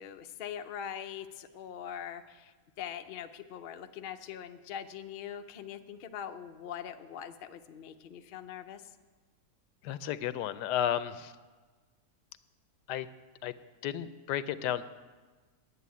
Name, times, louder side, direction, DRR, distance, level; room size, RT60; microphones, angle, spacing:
voice 1, 0.0-8.9, left 9 dB, 75° left, 7 dB, 0.5 m, -42 dB
voice 2, 9.8-11.3 12.9-13.1 13.4-13.5 13.8-14.9, left 10 dB, 90° left, 13 dB, 1.2 m, -32 dB
9.8 x 7.8 x 9.4 m, 1.4 s
omnidirectional pair, 1.7 m